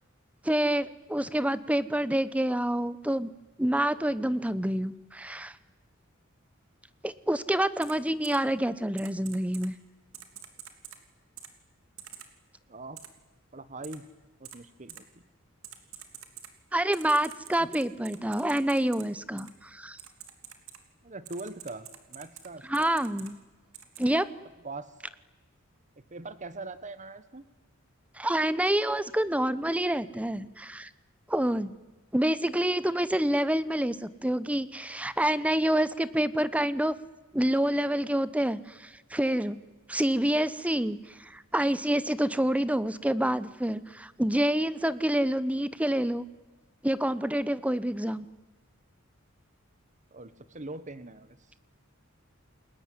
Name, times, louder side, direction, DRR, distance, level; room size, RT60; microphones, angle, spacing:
voice 1, 0.4-3.3 3.6-5.6 7.0-9.7 16.7-20.0 22.7-23.4 24.0-24.3 28.2-30.9 31.3-31.7 32.1-36.9 37.3-39.6 39.9-46.2 46.8-48.3, right 1 dB, 5° right, 15 dB, 0.9 m, -27 dB
Typing, 7.8-7.9 8.2-8.4 9.0-9.7 10.1-11.0 11.4-11.5 12.0-12.3 13.0-13.1 13.8-14.0 14.4-14.6 14.9-15.0 15.6-16.5 16.9-19.0 19.4-19.5 20.0-20.8 21.3-22.5 22.7-23.3 23.7-24.1, right 11 dB, 90° right, 3.0 m, -45 dB
voice 2, 13.5-14.0 14.4-15.0 17.6-17.8 21.0-22.9 24.6-24.9 26.1-27.4 50.1-51.4, right 2 dB, 35° right, 13 dB, 1.4 m, -42 dB
29.5 x 21.5 x 9.6 m, 1.2 s
head